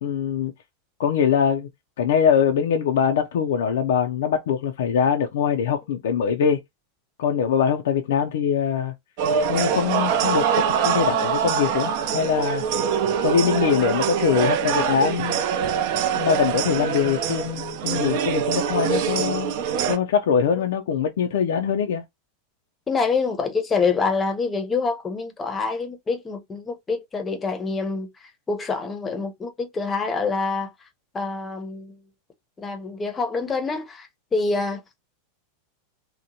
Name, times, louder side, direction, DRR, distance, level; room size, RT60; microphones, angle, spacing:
voice 1, 0.0-0.5 1.0-1.7 2.0-6.6 7.2-8.9 9.5-12.6 13.2-15.4 16.1-19.5 19.9-22.0, left 7 dB, 80° left, 0.4 m, -22 dB
sound 1, 9.2-20.0, right 7 dB, 60° right, 0.5 m, -24 dB
voice 2, 22.9-30.7 31.1-32.0 32.6-34.8, left 4 dB, 20° left, 0.7 m, -26 dB
2.8 x 2.1 x 2.7 m
supercardioid pair, 125°, 0 cm